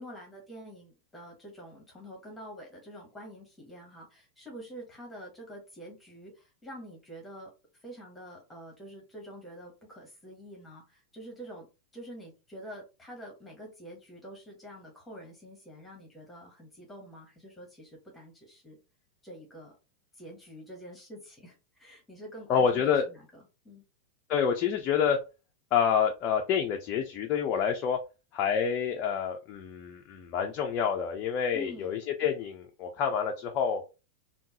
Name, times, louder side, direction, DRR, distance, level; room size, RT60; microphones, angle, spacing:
voice 1, 0.0-11.7 11.9-18.8 19.2-19.7 20.1-23.8 31.5-32.0, equal, 10° left, 0 dB, 1.2 m, -47 dB
voice 2, 22.5-23.0 24.3-25.2 25.7-28.0 28.3-33.8, left 7 dB, 35° left, 2 dB, 0.5 m, -28 dB
3.6 x 2.2 x 2.9 m, 0.29 s
figure-of-eight pair, 90°, 0 cm